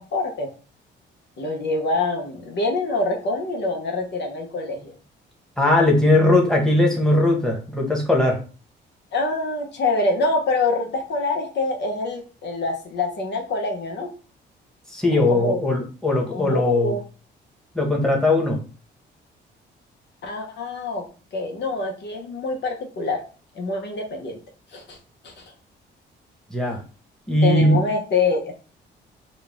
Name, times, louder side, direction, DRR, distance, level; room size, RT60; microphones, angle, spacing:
voice 1, 0.1-0.5 1.4-4.9 9.1-14.1 15.3-15.6 16.3-17.0 20.2-21.1 21.3-23.2 23.5-24.4 24.7-25.0 25.2-25.4 27.4-28.5, left 3 dB, 60° left, 2 dB, 1.0 m, -25 dB
voice 2, 5.6-8.4 14.9-16.9 17.7-18.6 26.5-26.8 27.3-27.8, left 2 dB, 5° left, -1 dB, 1.3 m, -19 dB
4.0 x 2.4 x 3.6 m, 0.36 s
cardioid pair, 90°, 20 cm